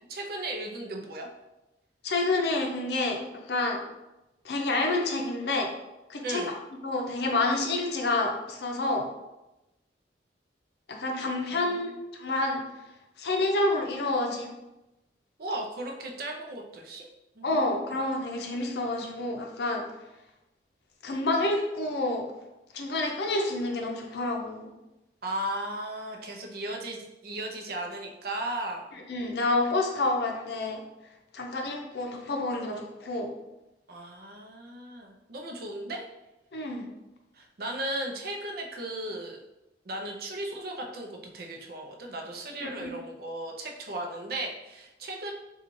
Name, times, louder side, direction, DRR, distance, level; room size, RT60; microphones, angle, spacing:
voice 1, 0.1-1.3 6.2-6.5 11.5-12.0 15.4-17.1 17.4-18.0 25.2-28.8 33.9-36.1 37.3-39.4 39.9-45.3, right 1 dB, 55° right, 1 dB, 0.5 m, -36 dB
voice 2, 2.0-3.2 3.5-3.8 4.4-5.7 6.1-6.5 6.8-9.1 10.9-12.6 13.2-14.5 17.4-19.8 21.0-22.3 22.7-24.7 29.1-30.8 31.3-33.3 36.5-36.9 42.6-42.9, left 2 dB, 65° left, 1 dB, 0.6 m, -28 dB
3.8 x 2.3 x 3.0 m, 0.97 s
head